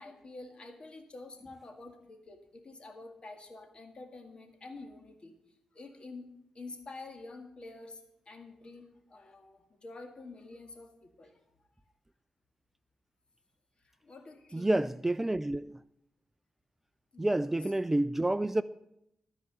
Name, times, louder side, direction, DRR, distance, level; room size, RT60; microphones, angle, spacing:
voice 1, 0.0-5.3 5.7-6.3 6.5-8.0 8.3-11.4 13.8-14.8 17.1-17.5, left 3 dB, 50° left, 1.9 m, -48 dB
voice 2, 14.5-15.8 17.2-18.6, right 1 dB, 15° right, 0.3 m, -29 dB
13.5 x 4.9 x 8.2 m
cardioid pair, 65°, 2 cm